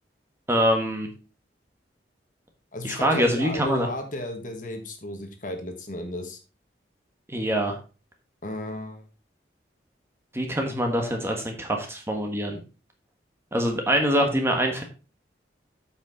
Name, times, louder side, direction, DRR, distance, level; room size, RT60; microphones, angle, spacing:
voice 1, 0.5-1.1 2.8-3.9 7.3-7.8 10.3-12.6 13.5-14.8, equal, 15° right, 3 dB, 1.3 m, -24 dB
voice 2, 2.7-6.4 8.4-9.1, left 1 dB, 45° left, 5 dB, 1.4 m, -34 dB
8.8 x 5.6 x 4.0 m, 0.33 s
head